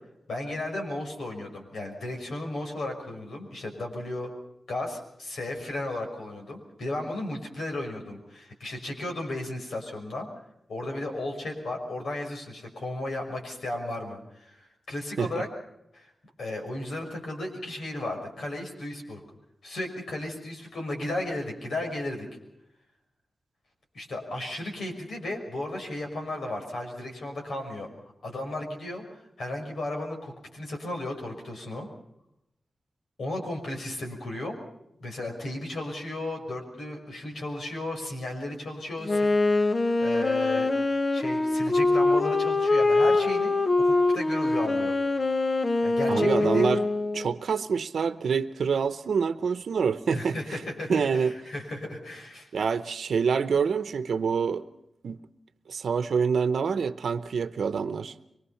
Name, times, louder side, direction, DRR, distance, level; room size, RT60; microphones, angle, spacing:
voice 1, 0.3-4.3 4.7-10.3 10.7-15.5 15.9-16.1 16.4-19.2 19.6-22.3 23.9-27.9 28.2-31.9 33.2-34.5 35.0-39.7 40.0-40.7 41.1-44.9 45.8-46.7 50.1-52.5, left 1 dB, 80° left, 5.8 m, -34 dB
Wind instrument woodwind instrument, 39.0-47.4, left 2 dB, 35° left, 0.9 m, -24 dB
voice 2, 46.1-46.8 47.1-50.6 50.9-51.3 52.5-54.7 55.0-55.2 55.7-58.1, right 6 dB, 90° right, 0.8 m, -26 dB
24.5 x 22.5 x 5.7 m
wide cardioid pair, 120°, 0 cm